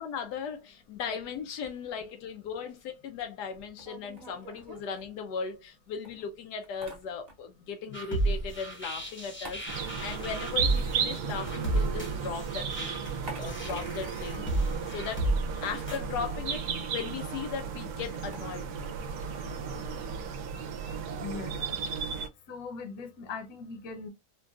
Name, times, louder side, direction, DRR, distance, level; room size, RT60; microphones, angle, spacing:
voice 1, 0.0-13.0 13.4-15.2 15.6-16.6 16.9-18.9 19.4-19.5, left 6 dB, 90° left, 1.2 m, -38 dB
sound 1, 3.5-5.7 6.0-7.7 7.9-12.1 12.4-15.7 16.0-16.1 16.3-22.1, right 1 dB, 40° right, 1.0 m, -50 dB
sound 2, 7.9-16.0, right 2 dB, 10° left, 0.8 m, -32 dB
sound 3, 9.7-22.3, right 6 dB, 75° right, 1.1 m, -34 dB
voice 2, 21.2-21.5 22.0-22.1 22.5-24.1, left 4 dB, 65° left, 1.3 m, -40 dB
3.8 x 2.2 x 2.3 m
omnidirectional pair, 1.7 m